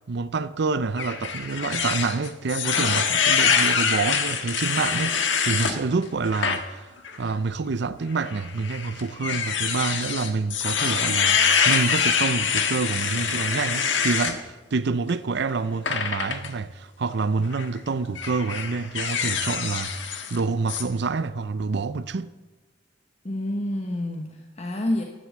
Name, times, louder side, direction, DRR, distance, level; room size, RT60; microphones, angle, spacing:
voice 1, 0.1-6.9 7.2-22.3, right 4 dB, 65° right, 0.6 m, -27 dB
sound 1, 1.0-5.8 6.3-6.6 7.0-7.2 8.2-14.4 15.9-16.5 17.4-17.7 18.2-20.4 20.7-20.8, left 6 dB, 85° left, 1.4 m, -25 dB
voice 2, 23.2-25.0, left 1 dB, 35° left, 1.1 m, -28 dB
11.0 x 10.5 x 7.4 m
head